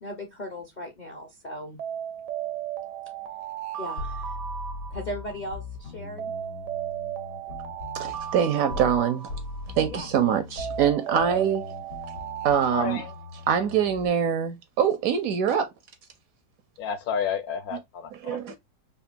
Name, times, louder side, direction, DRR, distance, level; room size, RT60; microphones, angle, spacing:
voice 1, 0.0-1.8 3.8-4.4 4.9-6.3 9.9-10.1, equal, 45° left, 0.6 m, -37 dB
Alarm, 1.8-5.5 6.2-9.9 10.6-13.8, right 10 dB, 85° right, 1.3 m, -36 dB
sound 1, 4.0-9.0 9.3-14.1, left 3 dB, 90° left, 2.5 m, -40 dB
voice 2, 7.9-9.3 9.8-11.7 12.4-13.0 13.5-15.7 18.2-18.6, right 8 dB, 70° right, 0.9 m, -24 dB
voice 3, 12.7-13.1 16.8-18.6, left 7 dB, 70° left, 1.0 m, -31 dB
5.1 x 2.4 x 2.4 m
omnidirectional pair, 1.8 m